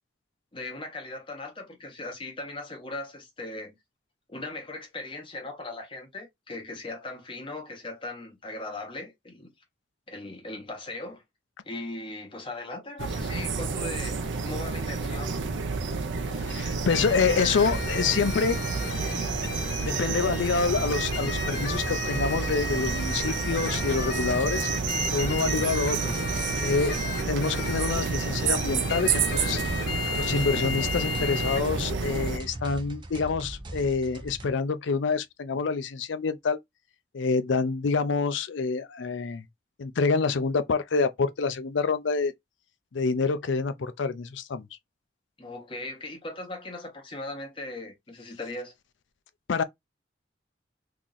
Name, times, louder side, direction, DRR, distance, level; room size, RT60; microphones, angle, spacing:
voice 1, 0.5-3.8 4.3-9.5 10.1-11.2 11.6-15.4 31.2-31.4 45.4-48.7, left 2 dB, 30° left, 0.9 m, -38 dB
sound 1, 13.0-32.4, right 5 dB, 80° right, 0.6 m, -30 dB
voice 2, 16.4-18.6 19.8-24.7 25.1-26.1 26.6-29.6 30.2-36.6 37.1-39.4 39.8-42.3 42.9-44.7 49.5-49.6, left 4 dB, 80° left, 0.5 m, -27 dB
sound 2, 16.9-31.6, left 4 dB, 55° left, 1.0 m, -34 dB
sound 3, 17.5-34.5, right 1 dB, 25° right, 0.5 m, -40 dB
2.9 x 2.5 x 3.8 m
head